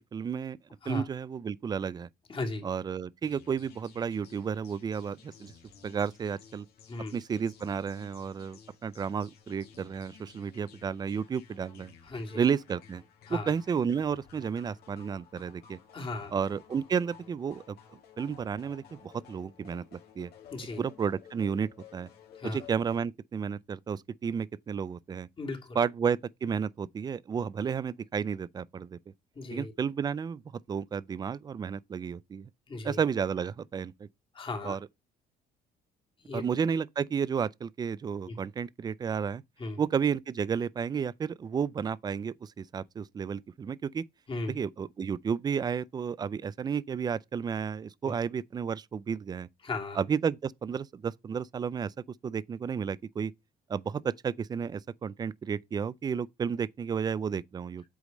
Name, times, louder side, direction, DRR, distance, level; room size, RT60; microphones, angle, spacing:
voice 1, 0.1-0.6 0.9-2.1 2.6-5.5 5.8-6.7 7.1-11.9 12.3-13.0 13.3-15.8 16.3-20.3 20.8-22.1 22.4-25.3 25.7-29.0 29.5-30.4 30.7-32.5 32.8-34.1 34.6-34.9 36.3-39.4 39.8-44.0 44.5-49.5 49.9-51.9 52.2-53.3 53.7-57.8, right 6 dB, 25° right, 0.4 m, -32 dB
voice 2, 2.3-2.6 6.9-7.2 12.1-12.4 13.3-13.5 15.9-16.3 20.5-20.8 22.4-22.6 25.4-25.8 29.4-29.7 32.7-33.0 34.4-34.8 36.3-36.4 38.3-38.4 39.6-39.8 44.3-44.5 49.6-50.0, left 2 dB, 30° left, 2.0 m, -36 dB
sound 1, 3.2-23.0, left 7 dB, 70° left, 2.1 m, -55 dB
8.2 x 3.1 x 5.1 m
cardioid pair, 110°, 17 cm